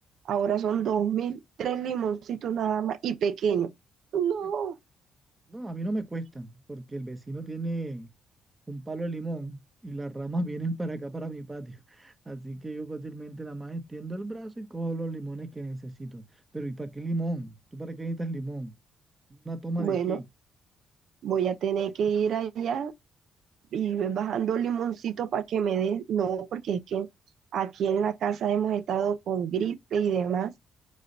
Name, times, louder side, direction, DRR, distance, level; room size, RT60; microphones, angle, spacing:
voice 1, 0.3-3.7 4.1-4.8 19.8-20.2 21.2-22.9 23.7-27.1 27.5-30.5, right 8 dB, 70° right, 0.6 m, -28 dB
voice 2, 5.5-8.1 8.7-16.2 16.5-18.7 19.3-20.2, right 2 dB, 20° right, 1.0 m, -35 dB
4.9 x 2.7 x 4.0 m
cardioid pair, 90°, 0 cm